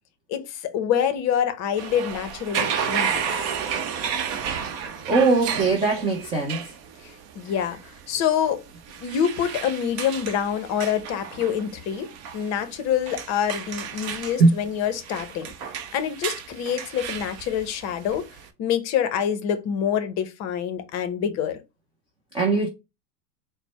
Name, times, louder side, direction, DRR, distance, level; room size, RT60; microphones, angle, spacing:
voice 1, 0.3-3.3 7.0-8.6 9.0-15.5 15.9-18.2 18.6-21.6, left 8 dB, 35° left, 0.7 m, -26 dB
sound 1, 1.8-18.5, right 7 dB, 45° right, 0.8 m, -32 dB
voice 2, 5.1-6.6 14.4-14.5 22.3-22.7, right 3 dB, 15° right, 0.3 m, -20 dB
4.2 x 2.1 x 3.1 m
hypercardioid pair, 100°, 49 cm